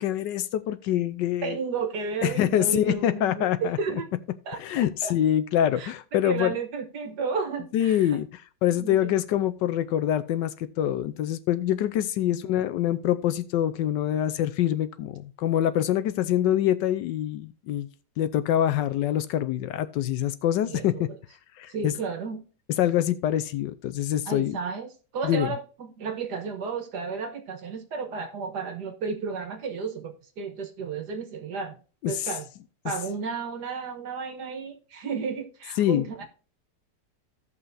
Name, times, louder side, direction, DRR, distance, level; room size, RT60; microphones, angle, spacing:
voice 1, 0.0-1.6 2.2-3.8 4.6-6.5 7.7-8.3 8.6-17.9 18.2-21.1 21.6-21.9 22.8-24.6 25.2-25.5 32.0-32.3 35.8-36.1, left 11 dB, 75° left, 1.2 m, -25 dB
voice 2, 1.4-3.4 3.8-4.1 4.5-5.1 5.8-5.9 6.2-8.2 8.7-9.0 12.3-12.4 20.6-21.2 21.7-22.4 24.3-24.9 25.1-31.8 32.1-32.5 32.8-36.2, right 5 dB, 60° right, 1.7 m, -33 dB
16.0 x 5.6 x 2.6 m
omnidirectional pair, 2.0 m